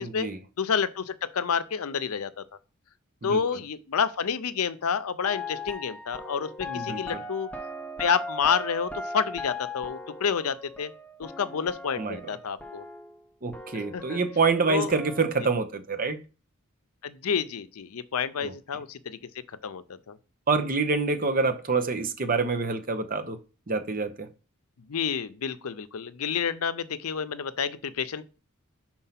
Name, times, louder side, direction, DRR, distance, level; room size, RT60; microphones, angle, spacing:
voice 1, 0.0-0.4 3.2-3.4 6.6-7.2 12.0-12.4 13.4-16.2 18.4-18.5 20.5-23.4 23.7-24.3, right 4 dB, 40° right, 0.8 m, -27 dB
voice 2, 0.6-2.4 3.2-7.5 8.0-10.9 11.2-12.8 13.9-14.2 14.7-15.0 17.0-19.2 19.6-20.2 24.9-28.2, left 6 dB, 80° left, 0.6 m, -29 dB
sound 1, 5.2-13.3 13.5-15.3, left 2 dB, 5° left, 0.6 m, -39 dB
5.5 x 4.4 x 5.8 m
head